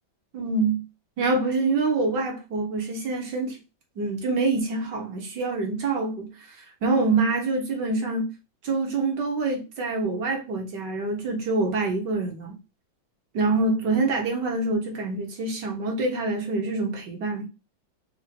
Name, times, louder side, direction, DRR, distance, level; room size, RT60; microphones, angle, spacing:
voice 1, 0.3-0.8 1.2-3.6 4.0-6.3 6.8-8.3 8.6-12.6 13.3-17.5, right 3 dB, 60° right, 2.0 m, -26 dB
5.7 x 2.7 x 2.8 m
omnidirectional pair, 2.1 m